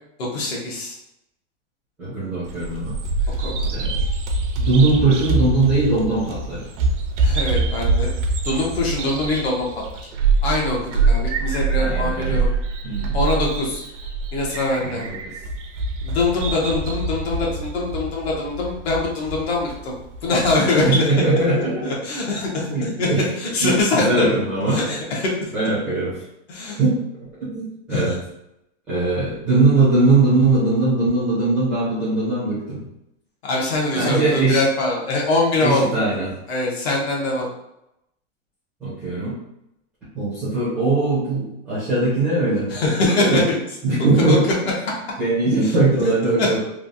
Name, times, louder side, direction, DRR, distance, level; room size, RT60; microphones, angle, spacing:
voice 1, 0.2-1.0 3.4-3.5 7.2-8.1 8.4-9.7 10.4-12.5 13.1-13.8 14.3-15.0 16.0-19.9 20.2-21.1 21.5-23.1 23.4-24.3 24.7-25.5 26.5-26.8 27.9-28.2 33.4-35.9 36.5-37.5 42.7-43.6 44.3-44.4 44.9-45.0 45.6-45.7 46.4-46.6, left 2 dB, 55° left, -2 dB, 1.0 m, -23 dB
voice 2, 2.0-3.0 3.7-4.0 4.6-6.7 11.8-12.4 12.8-13.2 14.8-15.1 20.8-21.9 22.7-23.2 23.6-24.8 25.5-26.1 26.8-27.0 27.5-28.1 28.9-32.8 33.9-34.6 35.6-36.3 38.8-39.4 40.1-42.7 43.2-43.4 43.8-44.4 45.2-46.6, right 2 dB, 5° right, -12 dB, 0.5 m, -20 dB
Bird vocalization bird call bird song, 2.5-20.6, right 3 dB, 70° right, 0.6 m, -24 dB
3.2 x 2.3 x 2.6 m, 0.84 s
supercardioid pair, 175°, 37 cm